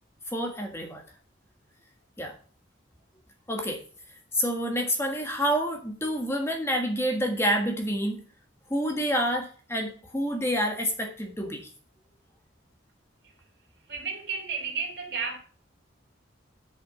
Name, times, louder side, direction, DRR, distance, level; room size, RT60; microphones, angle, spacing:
voice 1, 0.3-1.0 2.2-2.4 3.5-3.8 4.3-8.2 8.7-11.6, equal, 15° left, 1.5 m, -28 dB
voice 2, 13.9-15.4, right 5 dB, 55° right, 3.1 m, -32 dB
8.0 x 7.1 x 6.0 m
head